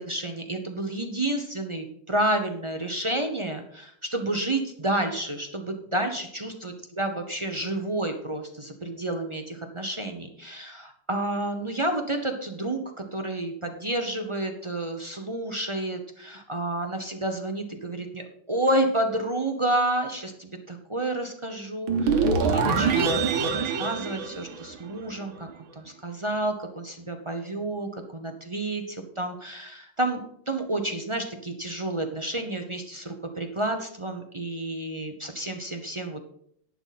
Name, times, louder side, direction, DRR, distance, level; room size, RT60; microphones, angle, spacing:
voice 1, 0.0-25.5 25.7-30.2 30.5-36.2, right 1 dB, 35° right, 4 dB, 0.4 m, -30 dB
sound 1, 21.9-25.1, right 5 dB, 80° right, 2.0 m, -24 dB
11.5 x 8.9 x 4.2 m, 0.68 s
omnidirectional pair, 2.2 m